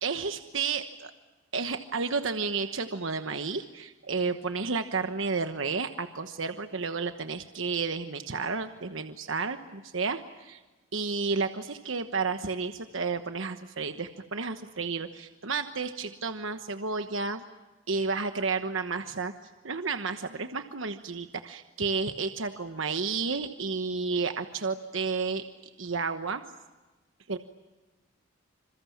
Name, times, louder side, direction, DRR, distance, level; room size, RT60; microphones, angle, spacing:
voice 1, 0.0-1.1 1.5-10.6 10.9-17.4 17.9-19.3 19.6-25.4 25.8-26.4 27.3-27.4, right 4 dB, 75° right, 8 dB, 1.2 m, -31 dB
27.5 x 27.5 x 7.3 m, 1.2 s
head